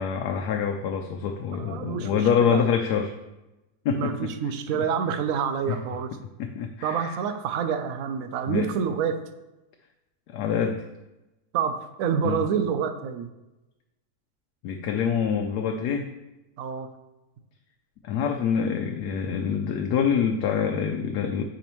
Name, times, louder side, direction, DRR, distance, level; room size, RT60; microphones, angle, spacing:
voice 1, 0.0-3.1 3.8-4.3 4.7-4.8 5.7-5.8 6.4-7.1 8.5-8.7 10.3-10.8 12.2-12.4 14.6-16.1 18.0-21.4, left 7 dB, 90° left, 4 dB, 1.2 m, -26 dB
voice 2, 1.6-2.6 3.9-6.1 6.8-9.2 11.5-13.3 16.6-16.9, right 7 dB, 70° right, 8 dB, 1.0 m, -27 dB
8.6 x 5.1 x 3.0 m, 1.0 s
omnidirectional pair, 1.6 m